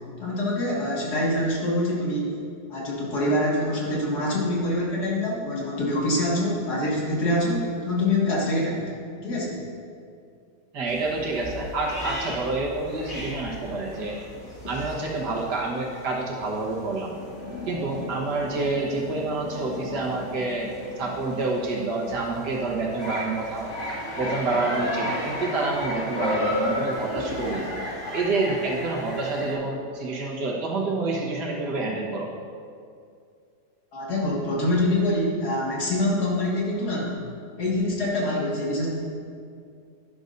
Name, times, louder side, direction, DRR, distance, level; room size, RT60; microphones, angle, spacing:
voice 1, 0.2-2.4 2.7-8.9 9.2-9.6 33.9-37.2 37.6-38.9, left 1 dB, 70° left, -5 dB, 2.5 m, -25 dB
voice 2, 10.7-14.2 14.7-17.1 17.7-23.7 24.2-27.7 28.1-32.3, right 3 dB, 80° right, -2 dB, 1.9 m, -28 dB
sound 1, 10.9-29.5, left 1 dB, 45° left, 2.5 m, -34 dB
12.0 x 10.5 x 2.6 m, 2.4 s
omnidirectional pair, 1.8 m